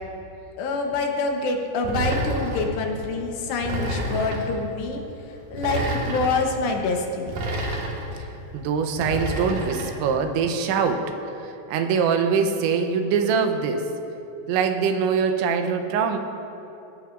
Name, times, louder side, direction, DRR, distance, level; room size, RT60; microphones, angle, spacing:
voice 1, 0.6-5.0 5.5-7.4, left 3 dB, 75° left, 2 dB, 3.0 m, -26 dB
sound 1, 1.8-2.7 3.6-4.5 5.5-6.4 7.3-8.2 9.0-9.9, right 1 dB, 60° right, 2.5 m, -28 dB
voice 2, 8.5-11.2 11.4-13.9 14.5-16.2, right 6 dB, 80° right, 6 dB, 3.1 m, -23 dB
19.5 x 16.5 x 2.5 m, 2.9 s
omnidirectional pair, 5.3 m